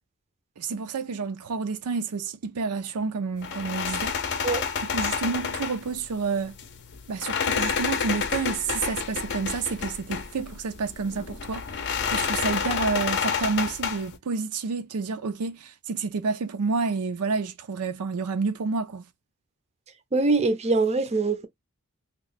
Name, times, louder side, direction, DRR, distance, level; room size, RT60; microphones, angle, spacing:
voice 1, 0.6-4.2 4.9-6.6 7.1-19.0, right 4 dB, 85° right, 0.5 m, -29 dB
sound 1, 3.4-14.2, left 6 dB, 55° left, 0.6 m, -30 dB
voice 2, 20.1-21.5, right 3 dB, 30° right, 0.5 m, -23 dB
3.0 x 2.2 x 4.0 m
head